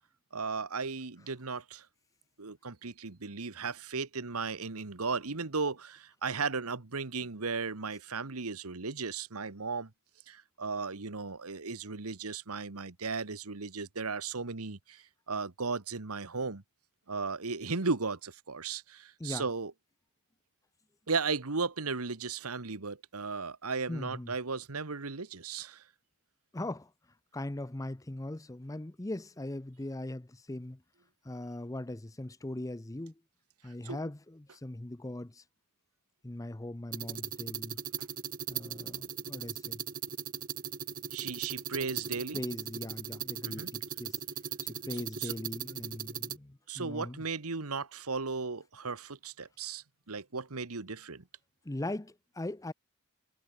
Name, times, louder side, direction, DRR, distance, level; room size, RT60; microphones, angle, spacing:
voice 1, 0.3-1.9 2.4-9.9 10.3-16.6 17.1-19.7 21.1-25.8 33.8-34.0 41.1-42.4 43.4-43.7 45.2-45.3 46.7-51.2, right 4 dB, 90° right, 1.5 m, -36 dB
voice 2, 23.9-24.3 26.5-26.9 27.3-30.8 31.2-33.1 33.6-35.4 36.2-37.8 38.5-39.8 42.3-44.2 44.6-47.2 51.6-52.7, left 1 dB, 15° left, 0.6 m, -40 dB
sound 1, 36.9-46.4, right 9 dB, 40° right, 1.6 m, -38 dB
head